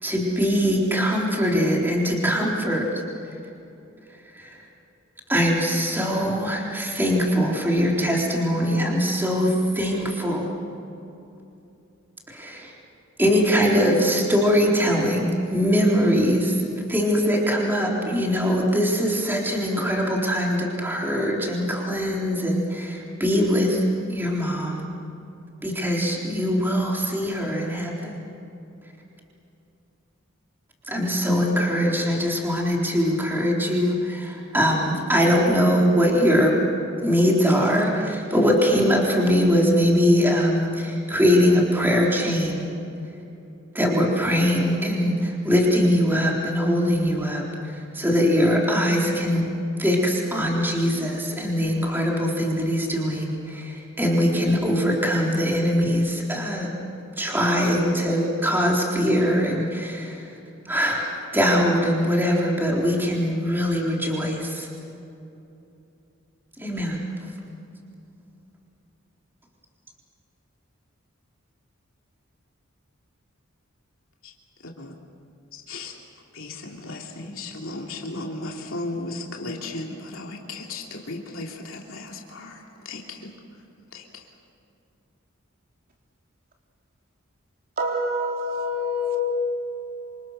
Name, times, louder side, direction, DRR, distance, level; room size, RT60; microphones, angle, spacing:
voice 1, 0.0-2.9 4.3-4.6 5.3-10.5 12.3-12.7 13.2-16.6 16.9-23.8 24.1-24.8 25.6-28.2 30.9-36.5 37.0-42.7 43.7-47.4 47.9-49.5 49.8-56.7 57.2-60.2 60.7-64.7 66.6-67.0, equal, 10° right, 3.8 m, -22 dB
voice 2, 75.5-76.0 76.3-83.3 83.9-84.3, left 2 dB, 80° left, 3.0 m, -35 dB
voice 3, 87.8-89.2, left 1 dB, 45° right, 4.0 m, -26 dB
27.5 x 26.5 x 6.5 m
head